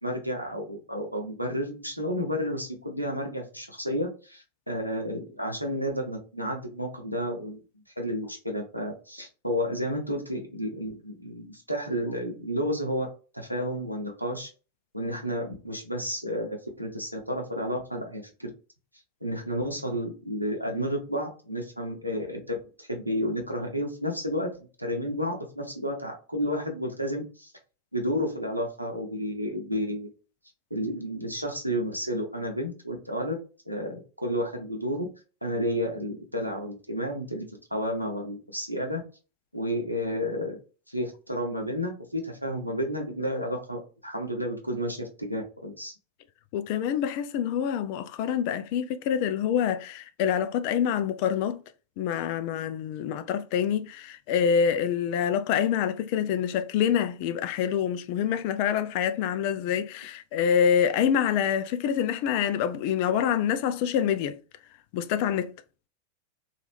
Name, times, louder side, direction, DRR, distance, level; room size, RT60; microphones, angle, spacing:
voice 1, 0.0-7.6 8.0-13.1 13.3-14.5 14.9-18.5 19.2-27.5 27.9-30.1 30.7-33.4 33.7-35.1 35.4-37.5 37.7-39.0 39.5-40.6 40.9-45.9, equal, 90° right, 0.8 m, -31 dB
voice 2, 46.5-51.6 52.0-64.4 64.9-65.5, left 8 dB, 45° left, 0.3 m, -26 dB
2.9 x 2.4 x 3.3 m
figure-of-eight pair, 90°, 0 cm